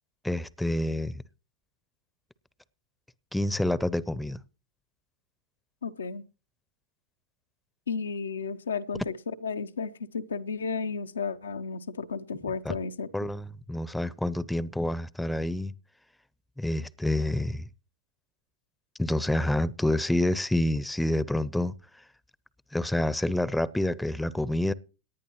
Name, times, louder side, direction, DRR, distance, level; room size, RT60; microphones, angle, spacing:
voice 1, 0.2-1.2 3.3-4.4 12.6-12.7 13.1-15.7 16.6-17.7 19.0-21.7 22.7-24.7, left 1 dB, 5° left, 0.7 m, -28 dB
voice 2, 5.8-6.2 7.9-9.2 9.4-13.1, left 5 dB, 80° left, 0.7 m, -33 dB
18.0 x 10.5 x 3.1 m
figure-of-eight pair, 90°, 0 cm